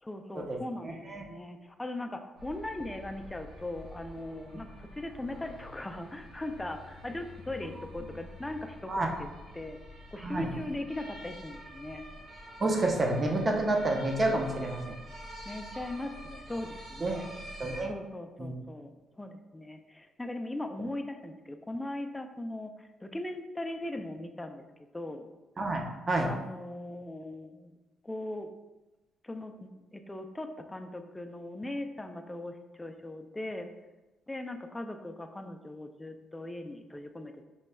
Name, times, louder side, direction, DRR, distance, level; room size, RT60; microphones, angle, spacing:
voice 1, 0.0-9.0 9.5-9.8 10.1-12.0 15.4-17.4 17.9-24.6 24.9-25.3 26.2-27.8 28.0-28.5 29.2-33.7 34.3-37.4, left 1 dB, 15° left, 6 dB, 0.4 m, -39 dB
voice 2, 0.8-1.3 8.9-9.1 10.2-10.5 12.6-15.0 17.0-17.2 17.6-17.9 18.4-18.5 25.6-26.3, right 2 dB, 35° right, 1 dB, 0.7 m, -29 dB
sound 1, 2.4-17.8, equal, 75° right, 1.0 m, -47 dB
5.4 x 3.0 x 2.2 m, 1.1 s
cardioid pair, 90°, 0 cm